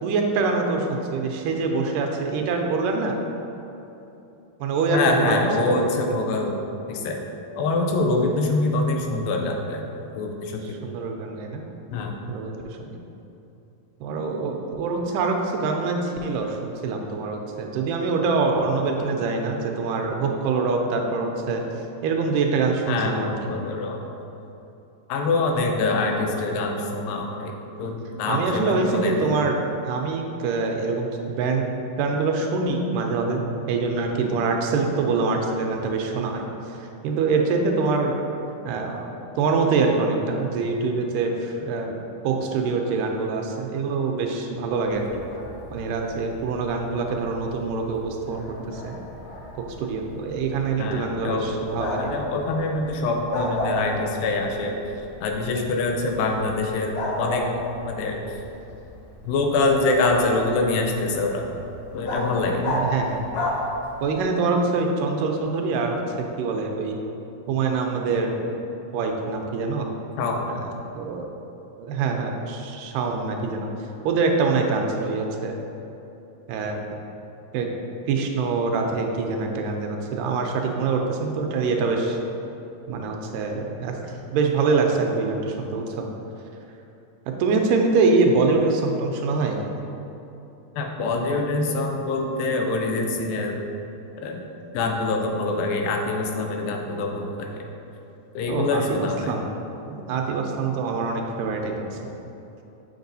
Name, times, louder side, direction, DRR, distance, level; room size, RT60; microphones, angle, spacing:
voice 1, 0.0-3.2 4.6-5.4 5.7-5.9 10.6-11.6 12.3-13.0 14.0-21.6 22.0-23.5 28.3-31.7 32.0-36.5 36.8-38.2 38.7-39.1 39.4-41.9 42.2-45.2 45.7-48.9 49.6-52.1 62.6-63.2 64.0-67.0 67.5-68.4 68.9-69.9 70.5-70.6 71.0-71.3 71.8-73.7 74.0-75.6 76.5-76.8 77.5-77.7 78.1-82.2 82.9-86.1 87.4-89.6 98.5-99.5 99.9-102.1, right 4 dB, 85° right, 2 dB, 2.1 m, -25 dB
voice 2, 4.9-6.6 6.9-7.2 7.6-9.9 10.2-10.8 11.9-12.1 22.9-24.0 25.1-27.5 27.8-29.2 50.8-54.8 55.2-57.5 57.9-58.2 59.3-61.5 61.9-62.7 70.2-70.5 90.8-93.6 94.2-94.4 94.7-97.5 98.4-99.4, left 3 dB, 90° left, 2 dB, 2.4 m, -25 dB
Bark, 44.9-64.3, left 1 dB, 70° left, 1.6 m, -34 dB
7.2 x 5.4 x 2.6 m, 2.9 s
omnidirectional pair, 3.9 m